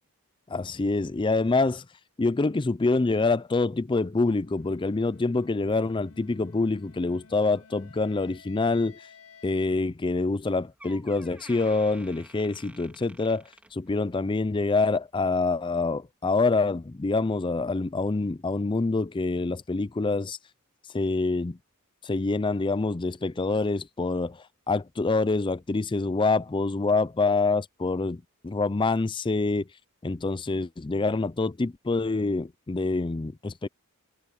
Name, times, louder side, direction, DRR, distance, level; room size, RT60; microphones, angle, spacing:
voice 1, 0.5-1.9 2.2-9.0 9.4-13.4 13.7-20.4 20.9-21.6 22.0-29.7 30.0-33.7, left 3 dB, 20° left, 0.4 m, -26 dB
sound 1, 3.4-9.7, left 5 dB, 85° left, 6.6 m, -54 dB
Door, 10.3-10.4 10.8-14.3 14.6-14.9 15.6-15.7, right 1 dB, 5° right, 3.7 m, -51 dB
head